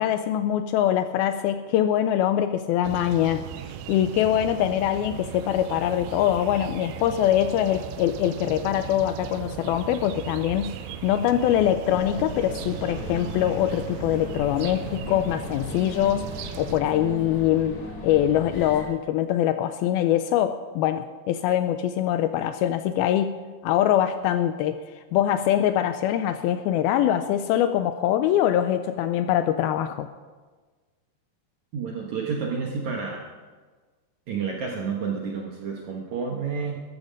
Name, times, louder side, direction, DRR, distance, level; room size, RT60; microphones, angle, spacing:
voice 1, 0.0-3.4 3.9-10.8 11.0-24.8 25.1-30.1, left 11 dB, 85° left, 10 dB, 2.2 m, -23 dB
sound 1, 2.8-16.8, right 10 dB, 85° right, 2.7 m, -37 dB
sound 2, 11.9-18.8, left 2 dB, 45° left, 1.7 m, -38 dB
voice 2, 31.7-33.3 34.3-36.8, right 5 dB, 65° right, -1 dB, 2.0 m, -30 dB
14.0 x 13.0 x 5.2 m, 1.4 s
omnidirectional pair, 4.8 m